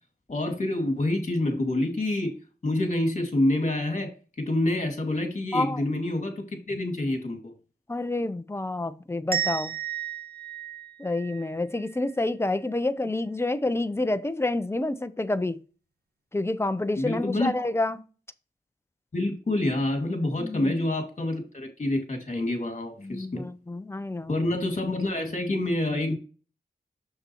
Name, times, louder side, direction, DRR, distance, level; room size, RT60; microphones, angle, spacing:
voice 1, 0.3-2.3 2.6-4.1 4.4-7.5 17.0-17.5 19.1-23.4 24.3-26.2, left 1 dB, 40° left, 2.2 m, -27 dB
voice 2, 7.9-9.7 11.0-15.6 16.3-18.0 20.4-20.8 23.0-24.5, left 2 dB, 15° left, 0.6 m, -28 dB
sound 1, 9.3-12.1, right 9 dB, 60° right, 1.4 m, -33 dB
7.0 x 6.5 x 3.0 m
wide cardioid pair, 85°, 18 cm